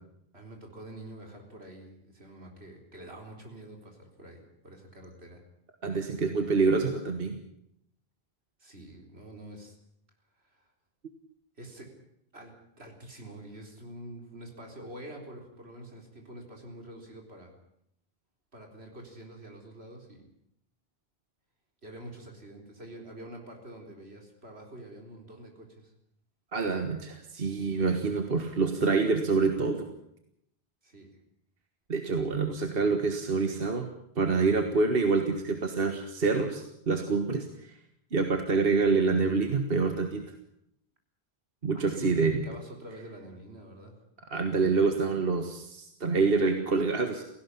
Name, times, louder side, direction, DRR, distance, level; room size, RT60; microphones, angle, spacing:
voice 1, 0.3-5.4 8.6-9.8 10.4-10.7 11.6-11.9 12.3-17.5 18.5-20.2 21.8-25.9 30.8-31.1 41.7-43.9, right 1 dB, 90° right, 2 dB, 4.4 m, -46 dB
voice 2, 5.8-7.4 26.5-29.9 31.9-33.9 34.1-37.7 38.1-40.2 41.6-42.4 44.3-47.2, right 4 dB, 65° right, 6 dB, 1.8 m, -26 dB
18.0 x 16.0 x 9.8 m, 0.75 s
omnidirectional pair, 1.0 m